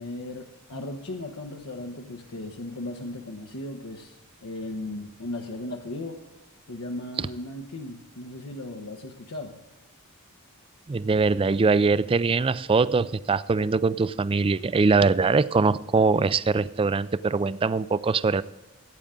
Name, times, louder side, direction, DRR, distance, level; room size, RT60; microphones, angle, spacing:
voice 1, 0.0-6.2 6.7-9.6, left 1 dB, 85° left, 3 dB, 1.0 m, -36 dB
voice 2, 10.9-18.4, right 4 dB, 25° right, 17 dB, 0.3 m, -22 dB
16.5 x 8.8 x 3.7 m, 1.1 s
head